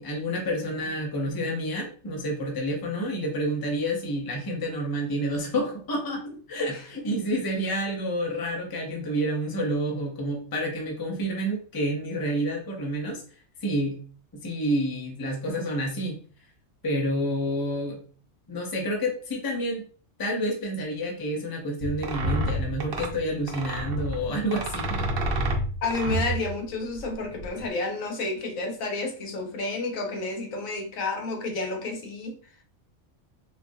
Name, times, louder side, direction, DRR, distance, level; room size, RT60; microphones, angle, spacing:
voice 1, 0.0-13.2 13.6-14.0 14.3-16.2 16.8-18.0 18.5-19.9 20.2-25.1, equal, 25° left, 0.5 m, -29 dB
sound 1, 21.8-27.7, right 1 dB, 55° right, 0.7 m, -29 dB
voice 2, 25.8-32.4, left 3 dB, 85° left, 1.1 m, -30 dB
3.7 x 2.4 x 2.6 m
omnidirectional pair, 1.4 m